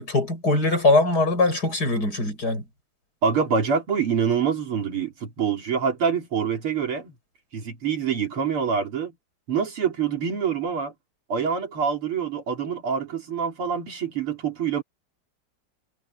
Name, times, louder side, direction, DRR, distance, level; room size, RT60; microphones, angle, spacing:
voice 1, 0.0-2.6, left 2 dB, 45° left, 8.1 m, -21 dB
voice 2, 3.2-7.1 7.5-9.1 9.5-10.9 11.3-14.8, right 6 dB, 90° right, 4.0 m, -25 dB
omnidirectional pair, 2.3 m